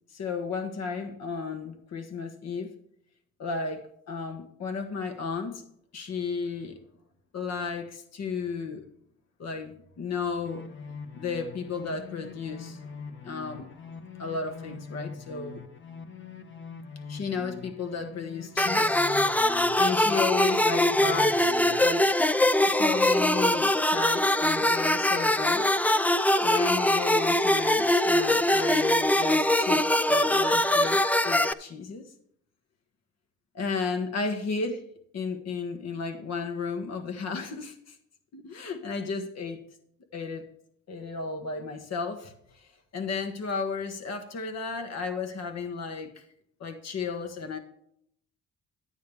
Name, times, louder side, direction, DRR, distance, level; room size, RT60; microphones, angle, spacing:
voice 1, 0.1-2.7 3.4-5.6 5.9-6.8 7.3-8.9 9.4-10.7 11.1-13.8 14.2-15.6 17.1-19.0 19.7-21.4 21.8-22.1 22.7-25.7 26.4-31.0 31.2-32.1 33.5-34.8 35.1-38.0 38.3-39.6 40.1-40.5 40.9-46.3 46.6-47.6, left 5 dB, 60° left, 7 dB, 1.7 m, -33 dB
sound 1, 10.4-21.8, left 5 dB, 40° left, 1.3 m, -43 dB
sound 2, 18.6-31.5, left 1 dB, 5° left, 0.4 m, -23 dB
11.0 x 9.2 x 3.5 m, 0.69 s
cardioid pair, 90°, 30 cm